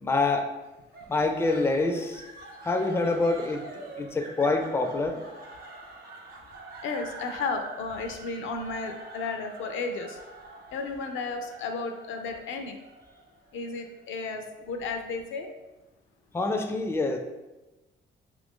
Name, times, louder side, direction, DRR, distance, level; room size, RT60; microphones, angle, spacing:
voice 1, 0.0-0.5 1.1-2.2 2.6-3.6 4.0-5.2 16.3-17.2, left 3 dB, 10° left, 4 dB, 0.4 m, -26 dB
sound 1, 0.9-14.1, right 3 dB, 50° right, 0.7 m, -45 dB
voice 2, 6.8-10.2 10.7-12.8 13.5-15.5, left 4 dB, 75° left, 5 dB, 0.5 m, -33 dB
2.8 x 2.5 x 3.6 m, 1.1 s
cardioid pair, 90°, 20 cm